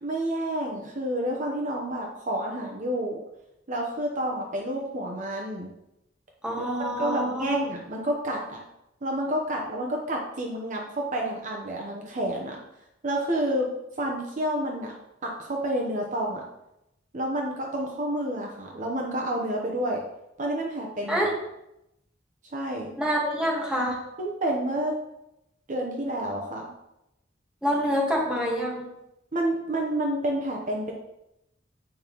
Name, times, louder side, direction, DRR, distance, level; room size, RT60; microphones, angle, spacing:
voice 1, 0.0-3.2 3.7-5.7 6.6-6.7 7.0-8.6 9.0-12.6 13.0-13.7 14.0-14.9 15.2-16.4 17.1-20.0 20.4-21.3 22.5-22.9 24.2-25.0 25.7-26.7 29.3-30.9, right 1 dB, 40° right, 0 dB, 0.9 m, -29 dB
voice 2, 6.4-7.6 21.1-21.3 23.0-24.0 27.6-28.9, equal, 5° right, -3 dB, 1.5 m, -26 dB
8.8 x 5.4 x 3.0 m, 0.86 s
head